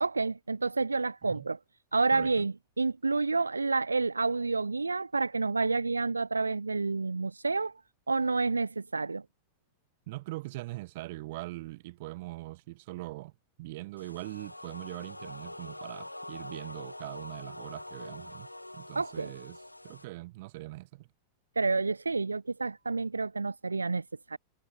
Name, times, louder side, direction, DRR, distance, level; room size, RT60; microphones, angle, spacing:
voice 1, 0.0-1.6 1.9-7.7 8.1-9.2 19.0-19.3 21.6-24.4, right 3 dB, 80° right, 0.3 m, -29 dB
voice 2, 2.1-2.5 10.1-13.3 13.6-18.5 18.7-21.1, right 20 dB, 50° right, 3.9 m, -42 dB
sound 1, 14.0-20.0, left 1 dB, 85° left, 1.9 m, -44 dB
figure-of-eight pair, 90°, 0 cm